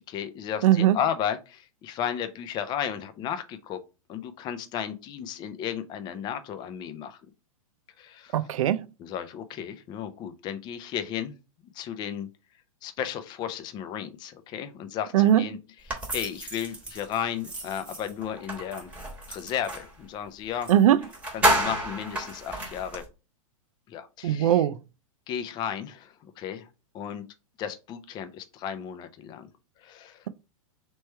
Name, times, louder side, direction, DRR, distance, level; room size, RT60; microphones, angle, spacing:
voice 1, 0.1-3.8 4.1-7.2 8.0-8.3 9.0-11.3 11.7-12.3 12.8-15.6 15.9-18.9 19.3-20.7 21.3-23.0 23.9-24.6 25.3-26.7 26.9-27.2 27.6-29.5 29.8-30.2, left 9 dB, 25° left, 0.5 m, -34 dB
voice 2, 0.6-1.0 8.3-8.8 15.1-15.4 20.7-21.0 24.2-24.8, right 11 dB, 70° right, 0.5 m, -20 dB
sound 1, 15.9-19.9 20.6-20.7 21.0-23.1, right 1 dB, 5° right, 1.2 m, -30 dB
3.3 x 3.1 x 4.4 m
hypercardioid pair, 135°, 18 cm